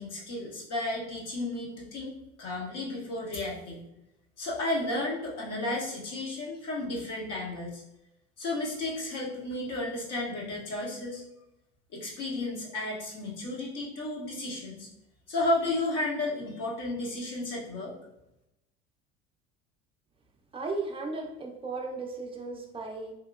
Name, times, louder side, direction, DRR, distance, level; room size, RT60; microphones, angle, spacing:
voice 1, 0.0-2.1 2.4-3.9 4.4-7.8 8.4-11.2 11.9-14.9 15.3-17.9, left 2 dB, 45° left, -3 dB, 0.9 m, -33 dB
voice 2, 20.5-23.1, right 3 dB, 15° right, 1 dB, 0.6 m, -35 dB
2.9 x 2.7 x 2.4 m, 0.88 s
hypercardioid pair, 70°, 36 cm